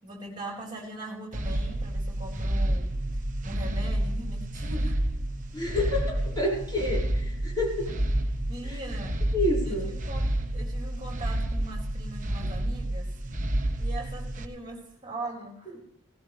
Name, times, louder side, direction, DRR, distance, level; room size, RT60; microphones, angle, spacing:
voice 1, 0.0-2.9 3.4-5.0 7.8-7.9 8.5-9.2 9.6-13.1 13.8-15.8, right 2 dB, 25° right, 0 dB, 4.5 m, -40 dB
sound 1, 1.3-14.5, right 1 dB, 40° right, 1.3 m, -29 dB
voice 2, 5.5-8.0 8.6-8.8 9.3-9.9, left 1 dB, 20° left, -4 dB, 5.4 m, -29 dB
18.0 x 16.0 x 3.3 m, 0.76 s
head